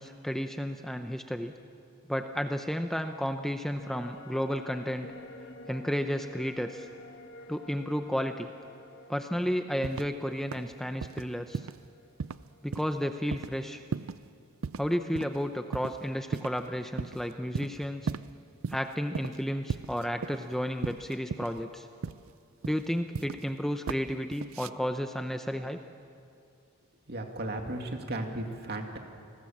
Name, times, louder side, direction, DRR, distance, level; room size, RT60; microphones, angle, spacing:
voice 1, 0.0-1.5 2.1-5.1 5.7-6.9 7.5-8.5 9.1-11.7 12.6-13.8 14.8-18.1 18.7-21.9 22.6-25.8, equal, ahead, 6 dB, 0.7 m, -32 dB
sound 1, 3.8-13.3 13.6-13.7, left 1 dB, 55° left, 1.5 m, -51 dB
sound 2, 9.8-10.2 10.5-10.7 11.0-11.2 11.5-11.9 12.2-12.4 12.7-13.0 13.3-13.5 13.9-14.3 14.6-14.9 15.2-15.3 15.7-16.0 16.3-16.7 17.0-17.2 17.5-18.3 18.6-18.8 19.1-19.4 19.7-20.5 20.8-21.6 22.0-22.3 22.6-23.5 23.9-24.0 24.3-24.7, right 5 dB, 80° right, 0.5 m, -36 dB
voice 2, 27.1-29.0, right 1 dB, 50° right, 3 dB, 2.5 m, -35 dB
29.5 x 19.5 x 7.4 m, 2.4 s
head